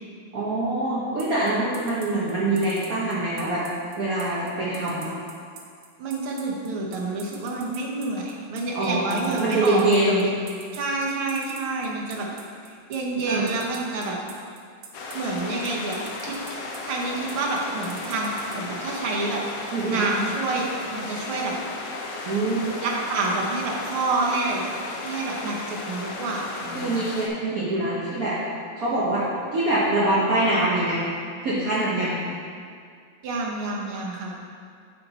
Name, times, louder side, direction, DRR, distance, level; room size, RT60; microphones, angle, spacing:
voice 1, 0.3-3.6 4.0-5.1 8.7-10.3 13.3-13.5 19.7-20.1 22.3-22.8 26.7-28.4 28.8-29.2 29.5-31.0 31.4-32.2, right 2 dB, 55° right, -8 dB, 1.1 m, -24 dB
sound 1, 1.2-18.6, right 7 dB, 70° right, 1.4 m, -43 dB
voice 2, 6.0-10.3 10.7-12.3 12.9-14.2 15.1-19.4 19.9-21.5 22.8-24.7 25.0-27.1 33.2-34.3, right 3 dB, 90° right, -2 dB, 1.9 m, -28 dB
sound 2, 14.9-27.3, left 3 dB, 80° left, 0.7 m, -35 dB
5.8 x 5.6 x 4.0 m, 2.2 s
omnidirectional pair, 2.3 m